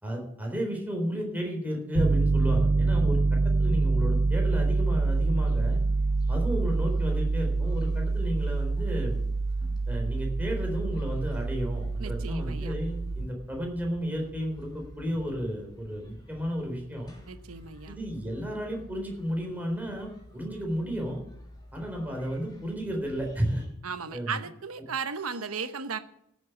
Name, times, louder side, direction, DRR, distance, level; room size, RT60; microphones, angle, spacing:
voice 1, 0.0-3.2 3.6-5.8 6.3-9.2 9.9-17.1 17.9-21.2 21.7-23.6 24.1-24.3, equal, 10° right, 0 dB, 3.9 m, -32 dB
Piano, 2.0-13.3, right 3 dB, 45° right, 0.5 m, -26 dB
sound 1, 5.3-23.7, equal, 20° left, 3.1 m, -49 dB
voice 2, 12.0-12.7 17.3-18.0 23.8-26.0, right 5 dB, 75° right, 10 dB, 1.1 m, -35 dB
16.5 x 8.0 x 6.1 m, 0.74 s
head